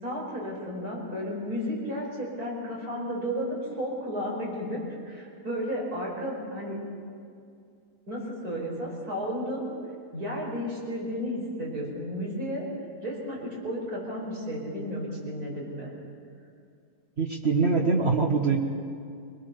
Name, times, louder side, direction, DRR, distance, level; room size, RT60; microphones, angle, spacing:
voice 1, 0.0-4.8 5.0-6.8 8.1-9.7 10.1-12.6 13.0-15.9, equal, 80° right, -3 dB, 5.7 m, -33 dB
voice 2, 17.2-18.6, right 4 dB, 45° right, 0 dB, 1.6 m, -23 dB
23.0 x 19.5 x 6.8 m, 2.3 s
omnidirectional pair, 1.6 m